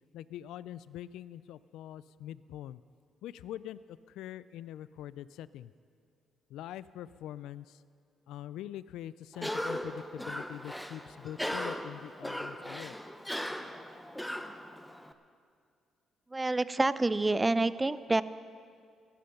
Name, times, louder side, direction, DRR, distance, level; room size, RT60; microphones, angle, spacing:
voice 1, 0.1-2.8 3.2-3.8 4.1-5.7 6.5-7.8 8.3-12.9, left 12 dB, 90° left, 17 dB, 0.3 m, -44 dB
Cough, 9.3-15.1, equal, 5° left, 0.8 m, -38 dB
voice 2, 16.3-18.2, right 2 dB, 20° right, 15 dB, 0.5 m, -27 dB
15.5 x 11.5 x 5.9 m, 2.2 s
cardioid pair, 90°, 0 cm